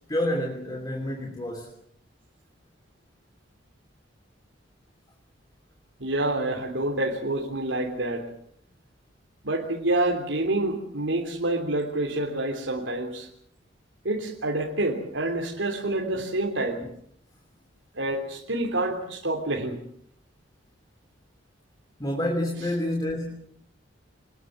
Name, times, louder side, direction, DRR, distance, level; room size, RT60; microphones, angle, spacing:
voice 1, 0.1-1.7 16.1-16.2 22.0-23.3, left 1 dB, 20° left, 2 dB, 3.0 m, -28 dB
voice 2, 6.0-8.2 9.4-13.3 14.0-16.8 17.9-19.8, right 2 dB, 90° right, 0 dB, 3.3 m, -27 dB
26.0 x 20.5 x 7.5 m, 0.67 s
head